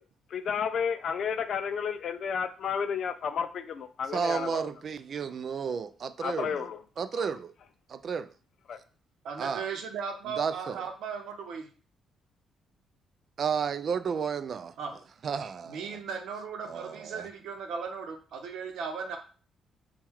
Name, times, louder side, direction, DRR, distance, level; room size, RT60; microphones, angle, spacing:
voice 1, 0.3-4.6 6.2-6.8 7.2-7.3 8.7-8.8, left 7 dB, 60° left, 0.4 m, -32 dB
voice 2, 4.1-6.6 7.0-7.5 7.9-8.3 9.4-9.7 10.3-10.8 13.4-14.7 15.2-16.0 16.7-17.3, right 6 dB, 55° right, 0.3 m, -32 dB
voice 3, 9.2-11.7 14.8-15.0 15.6-19.2, right 5 dB, 80° right, 0.8 m, -37 dB
3.6 x 2.3 x 4.4 m
cardioid pair, 90°, 0 cm